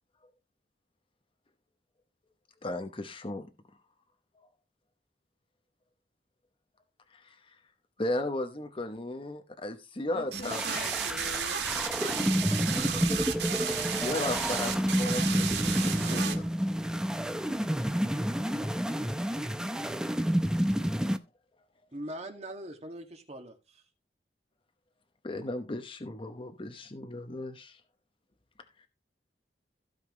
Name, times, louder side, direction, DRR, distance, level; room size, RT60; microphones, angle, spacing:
voice 1, 2.6-3.5 7.1-7.4 8.0-10.6 13.0-13.1 13.8-16.5 25.2-27.8, left 1 dB, 30° left, 0.9 m, -36 dB
voice 2, 10.1-13.0, left 2 dB, 60° left, 1.3 m, -46 dB
sound 1, 10.3-16.3, right 8 dB, 75° right, 1.6 m, -33 dB
sound 2, 10.5-21.2, equal, 5° right, 0.6 m, -29 dB
voice 3, 21.9-23.8, right 1 dB, 40° right, 1.9 m, -41 dB
15.5 x 5.7 x 3.1 m
head